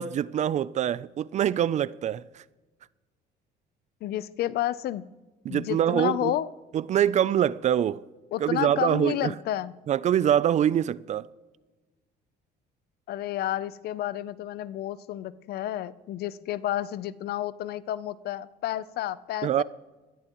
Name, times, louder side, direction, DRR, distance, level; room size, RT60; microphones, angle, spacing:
voice 1, 0.0-2.4 5.4-6.3 6.7-8.0 8.4-9.3 9.9-11.3 19.4-19.6, right 10 dB, 45° right, 0.4 m, -24 dB
voice 2, 4.0-5.0 5.5-6.5 8.3-9.7 13.1-19.6, left 13 dB, 70° left, 0.6 m, -31 dB
20.0 x 13.5 x 3.0 m
cardioid pair, 110°, 17 cm